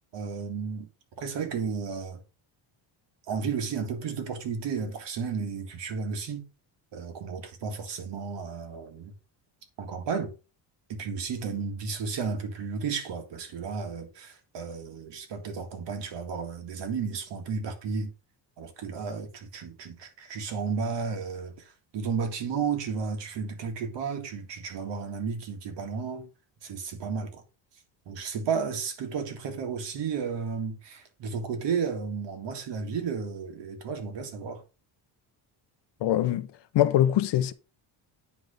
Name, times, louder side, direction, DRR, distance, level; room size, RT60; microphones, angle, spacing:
voice 1, 0.1-0.9 1.2-2.2 3.3-6.5 6.9-9.1 9.8-10.3 10.9-18.1 18.6-26.3 26.6-27.4 28.1-34.6, right 5 dB, 60° right, 2.1 m, -33 dB
voice 2, 36.0-36.5 36.7-37.5, left 12 dB, 60° left, 0.8 m, -23 dB
9.5 x 3.5 x 5.1 m
cardioid pair, 160°, 47 cm